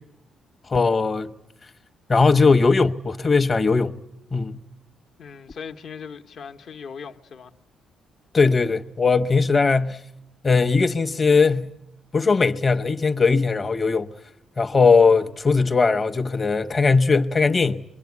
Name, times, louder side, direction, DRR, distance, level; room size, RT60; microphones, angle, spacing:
voice 1, 0.7-1.3 2.1-4.0 4.3-4.6 8.3-10.0 10.4-11.7 12.1-14.1 14.6-17.8, left 4 dB, 35° left, 1.0 m, -19 dB
voice 2, 5.2-7.5, left 6 dB, 60° left, 1.1 m, -39 dB
26.0 x 22.5 x 9.5 m
cardioid pair, 90°, 0 cm